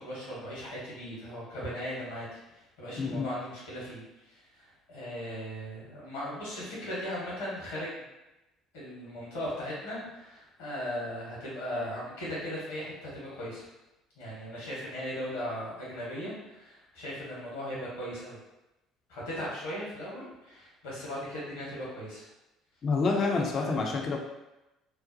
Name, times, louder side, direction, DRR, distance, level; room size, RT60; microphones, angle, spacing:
voice 1, 0.0-8.0 8.7-13.7 14.2-18.4 19.1-22.3 23.5-23.7, equal, 75° left, -7 dB, 1.1 m, -38 dB
voice 2, 22.8-24.2, left 4 dB, 45° left, 0 dB, 0.4 m, -28 dB
2.5 x 2.0 x 2.6 m, 0.97 s
hypercardioid pair, 60°, 0 cm